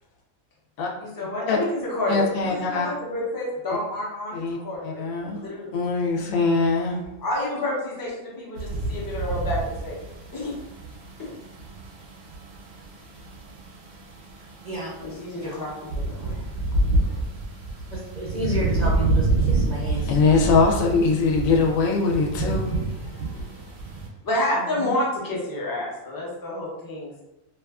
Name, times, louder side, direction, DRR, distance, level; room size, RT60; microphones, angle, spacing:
voice 1, 1.0-5.0 5.3-5.7 7.2-10.0 10.3-10.5 11.2-11.3 15.0-16.4 17.0-17.1 24.2-27.2, left 1 dB, 30° left, -5 dB, 0.4 m, -29 dB
voice 2, 2.1-2.9 4.3-4.6 4.8-5.4 5.7-7.0 20.0-22.8 23.3-23.4, left 4 dB, 90° left, 0 dB, 1.0 m, -22 dB
sound 1, 8.6-24.1, right 2 dB, 85° right, 1.0 m, -28 dB
voice 3, 17.9-20.2 24.6-25.0, left 1 dB, 55° right, -7 dB, 0.5 m, -31 dB
2.5 x 2.4 x 2.3 m, 0.93 s
omnidirectional pair, 1.4 m